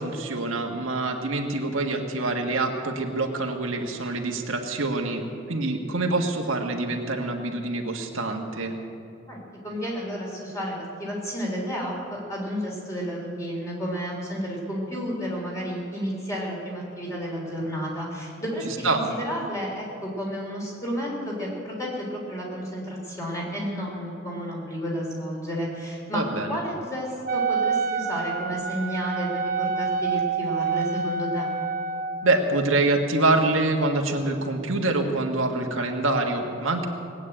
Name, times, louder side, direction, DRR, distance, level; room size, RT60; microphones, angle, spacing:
voice 1, 0.0-5.2 5.5-8.7 18.6-19.0 26.1-26.6 32.2-36.9, right 2 dB, 85° right, 2 dB, 1.6 m, -25 dB
voice 2, 9.3-29.3 29.6-31.5, equal, 15° left, -3 dB, 3.8 m, -31 dB
Wind instrument woodwind instrument, 27.2-32.3, right 5 dB, 45° right, 0.8 m, -27 dB
19.0 x 8.6 x 8.8 m, 2.7 s
head